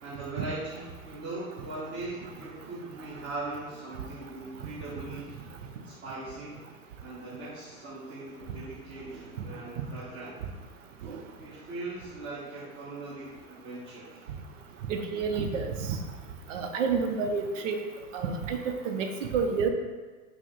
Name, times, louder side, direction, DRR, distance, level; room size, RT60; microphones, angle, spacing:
voice 1, 0.0-5.4 5.8-6.6 7.0-10.4 11.4-14.2, right 2 dB, 25° right, -11 dB, 1.3 m, -40 dB
voice 2, 14.9-16.0 16.5-17.8 18.1-19.7, right 5 dB, 60° right, 5 dB, 0.7 m, -29 dB
4.8 x 2.1 x 3.7 m, 1.3 s
figure-of-eight pair, 95°, 43 cm